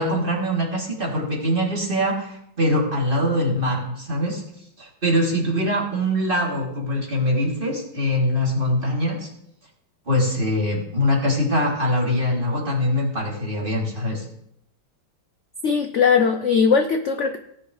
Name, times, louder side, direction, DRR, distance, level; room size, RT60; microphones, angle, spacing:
voice 1, 0.0-4.4 4.8-9.3 10.1-14.2, equal, 25° right, -3 dB, 3.0 m, -23 dB
voice 2, 15.6-17.4, left 6 dB, 65° left, 7 dB, 0.7 m, -19 dB
18.0 x 10.5 x 3.3 m, 0.75 s
omnidirectional pair, 2.1 m